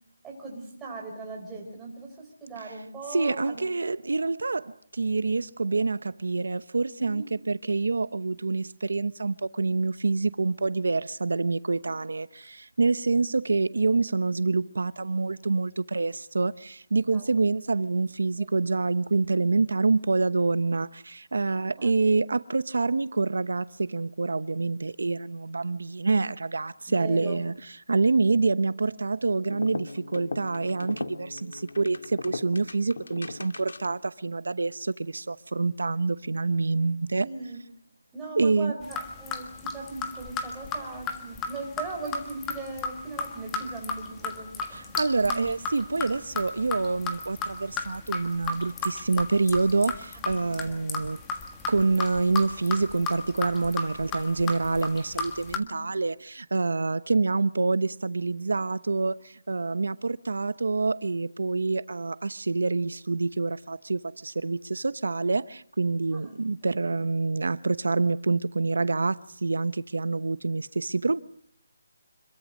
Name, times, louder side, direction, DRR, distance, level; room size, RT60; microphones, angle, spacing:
voice 1, 0.2-3.7 7.0-7.3 11.8-11.9 17.0-17.2 21.8-21.9 26.9-27.4 37.2-37.6 38.1-44.8 45.2-45.5 50.1-50.4 50.7-50.9 55.6-55.8 66.1-66.4, right 3 dB, 5° right, 4.0 m, -39 dB
voice 2, 3.1-27.5 27.9-37.3 38.4-38.7 44.7-51.2 51.7-71.2, right 3 dB, 85° right, 1.0 m, -27 dB
sound 1, 29.4-34.1, left 3 dB, 90° left, 2.2 m, -38 dB
sound 2, 38.8-55.6, left 3 dB, 10° left, 1.5 m, -34 dB
26.5 x 22.5 x 6.4 m
hypercardioid pair, 175°, 0 cm